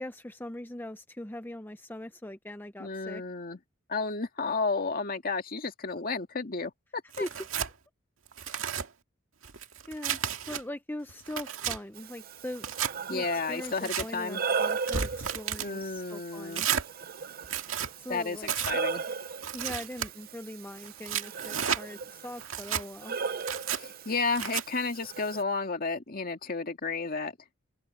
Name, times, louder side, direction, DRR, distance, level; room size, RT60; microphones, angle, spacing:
voice 1, 0.0-3.2 7.2-7.4 9.9-10.2 10.5-12.7 13.1-16.7 18.0-18.5 19.5-23.2, left 1 dB, 10° left, 0.8 m, -41 dB
voice 2, 2.8-3.6 3.9-7.3 13.1-14.4 15.6-16.7 18.1-19.0 23.7-27.3, left 4 dB, 45° left, 2.0 m, -32 dB
Tearing, 7.1-7.7 8.3-8.9 9.4-10.6 11.1-11.8 12.6-12.9 13.6-14.1 14.7-15.7 16.5-16.9 17.4-17.9 18.4-18.8 19.4-20.1 20.8-21.8 22.4-22.8 23.4-23.8 24.4-24.6, right 8 dB, 85° right, 2.1 m, -32 dB
Breathing, 12.0-25.4, right 5 dB, 50° right, 0.6 m, -37 dB
open air
head